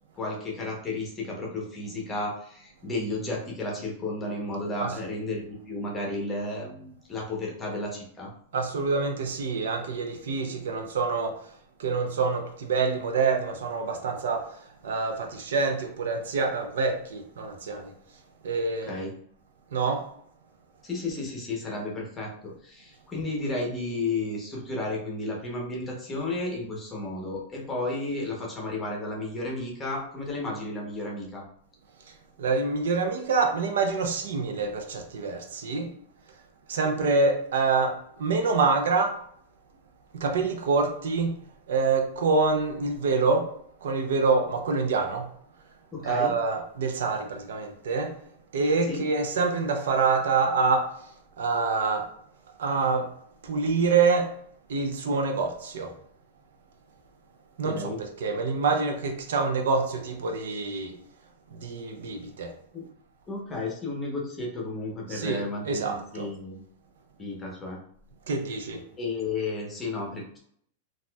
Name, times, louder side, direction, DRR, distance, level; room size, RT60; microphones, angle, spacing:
voice 1, 0.2-8.3 18.8-19.1 20.8-31.4 45.9-46.3 48.9-49.0 57.6-58.0 62.7-62.8 63.3-66.6 67.2-67.8 69.0-70.4, left 2 dB, 15° left, -2 dB, 0.8 m, -33 dB
voice 2, 8.5-11.4 11.8-14.6 14.8-17.9 18.4-18.9 19.7-20.1 32.4-35.9 36.7-39.2 40.1-43.5 43.8-45.3 46.0-48.1 48.5-50.9 51.4-52.1 52.6-53.1 53.4-54.3 54.7-55.9 57.6-57.9 58.2-61.0 61.5-62.5 65.1-66.3 68.3-68.8, right 4 dB, 80° right, 4 dB, 0.6 m, -26 dB
4.0 x 2.4 x 2.3 m, 0.65 s
supercardioid pair, 155°, 0 cm